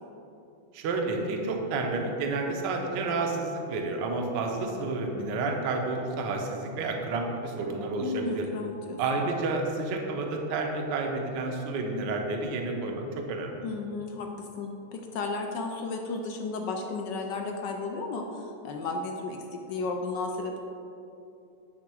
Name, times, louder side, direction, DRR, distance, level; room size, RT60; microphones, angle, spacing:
voice 1, 0.7-8.4 9.0-13.6, right 3 dB, 65° right, 2 dB, 1.3 m, -30 dB
voice 2, 8.0-9.0 13.6-20.6, left 3 dB, 75° left, 3 dB, 1.0 m, -34 dB
10.5 x 3.5 x 4.8 m, 2.8 s
omnidirectional pair, 2.4 m